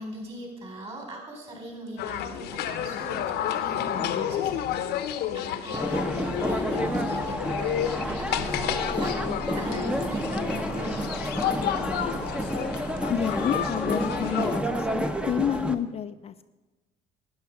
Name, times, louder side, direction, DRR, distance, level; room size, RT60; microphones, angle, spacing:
voice 1, 0.0-4.7 5.3-12.1, right 1 dB, 35° right, 1 dB, 4.7 m, -40 dB
sound 1, 2.0-14.6, left 10 dB, 75° left, 0.9 m, -31 dB
sound 2, 5.7-15.7, right 1 dB, 5° right, 0.8 m, -30 dB
voice 2, 13.1-16.5, left 9 dB, 35° left, 10 dB, 0.4 m, -29 dB
12.0 x 10.0 x 5.8 m, 1.2 s
cardioid pair, 110°, 17 cm